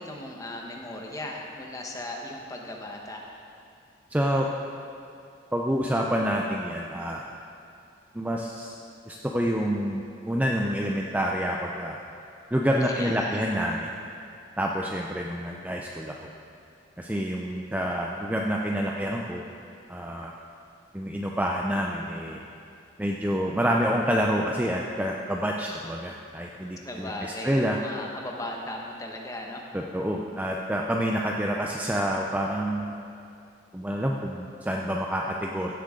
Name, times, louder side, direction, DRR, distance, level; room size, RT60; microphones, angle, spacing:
voice 1, 0.0-3.2 12.8-13.5 26.8-29.6, left 1 dB, 15° left, 0 dB, 1.0 m, -37 dB
voice 2, 4.1-4.5 5.5-7.2 8.1-8.7 9.1-12.0 12.5-13.9 14.6-16.1 17.0-19.4 19.9-20.3 20.9-22.4 23.0-27.8 29.7-32.9 33.7-35.7, equal, 10° right, -1 dB, 0.4 m, -27 dB
16.0 x 7.7 x 3.7 m, 2.5 s
head